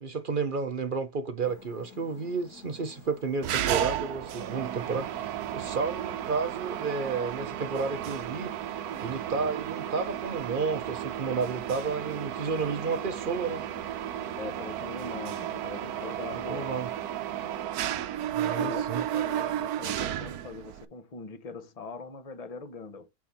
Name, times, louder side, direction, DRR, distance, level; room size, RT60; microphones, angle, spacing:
voice 1, 0.0-8.5 9.0-13.6 16.3-16.9 18.3-19.0, right 4 dB, 45° right, 0.7 m, -32 dB
sound 1, 1.4-17.7, left 6 dB, 70° left, 1.7 m, -52 dB
Mechanisms, 3.4-20.9, right 11 dB, 70° right, 1.1 m, -33 dB
voice 2, 14.3-16.8 18.4-23.1, left 4 dB, 30° left, 0.9 m, -41 dB
4.7 x 4.3 x 5.4 m
omnidirectional pair, 1.8 m